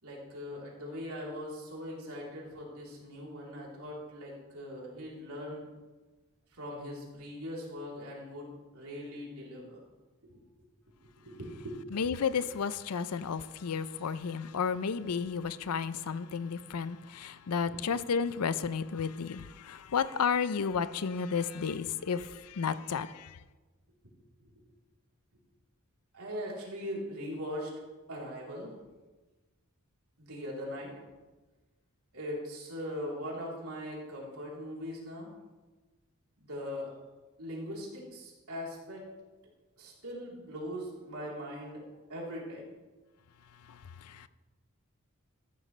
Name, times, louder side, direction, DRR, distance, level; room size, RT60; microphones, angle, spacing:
voice 1, 0.0-5.7 6.5-9.8 10.2-10.3 11.0-11.8 17.7-17.8 24.4-24.5 26.1-27.7 28.1-28.8 30.2-31.0 32.1-35.3 36.4-36.9 37.4-39.1 39.8-42.7, equal, 75° right, 3.6 m, -40 dB
voice 2, 11.9-23.4 43.7-44.3, left 6 dB, 90° left, 0.5 m, -32 dB
14.0 x 12.0 x 3.3 m
head